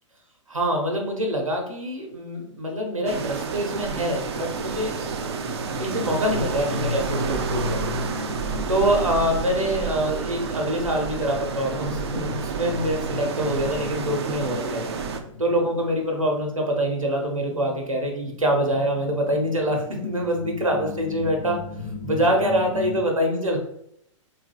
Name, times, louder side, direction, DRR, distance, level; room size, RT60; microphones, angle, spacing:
voice 1, 0.5-5.0 5.8-7.9 8.7-14.8 15.4-21.6 22.0-23.6, equal, 85° right, 1 dB, 0.8 m, -25 dB
sound 1, 3.1-15.2, right 6 dB, 55° right, 0.4 m, -30 dB
sound 2, 3.7-23.0, left 5 dB, 5° right, 0.7 m, -37 dB
3.4 x 3.3 x 2.3 m, 0.73 s
figure-of-eight pair, 110°, 17 cm